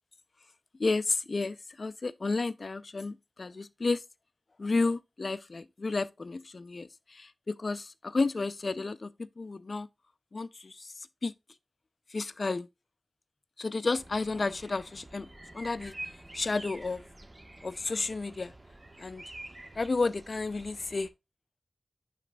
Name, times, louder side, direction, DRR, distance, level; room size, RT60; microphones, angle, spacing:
voice 1, 0.8-4.0 4.6-9.9 10.3-11.3 12.1-12.7 13.6-17.0 17.6-18.5 19.0-19.2 19.8-21.1, left 3 dB, 70° left, 0.4 m, -32 dB
sound 1, 14.0-21.1, right 1 dB, 35° right, 1.2 m, -48 dB
11.0 x 4.2 x 2.2 m
wide cardioid pair, 45°, 0 cm